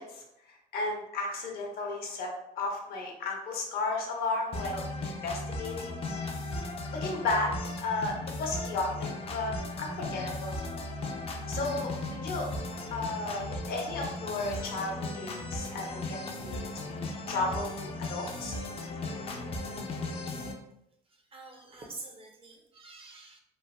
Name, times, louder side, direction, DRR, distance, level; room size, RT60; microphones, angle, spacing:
voice 1, 0.0-2.3 2.6-6.3 6.9-10.6 11.5-11.9 12.2-12.5 12.9-18.6, left 3 dB, 65° left, 0 dB, 0.7 m, -34 dB
sound 1, 4.5-20.5, left 2 dB, 35° left, 0.4 m, -37 dB
voice 2, 21.3-23.4, right 3 dB, 35° right, 2 dB, 0.5 m, -46 dB
3.1 x 2.0 x 2.3 m, 0.83 s
cardioid pair, 110°, 17 cm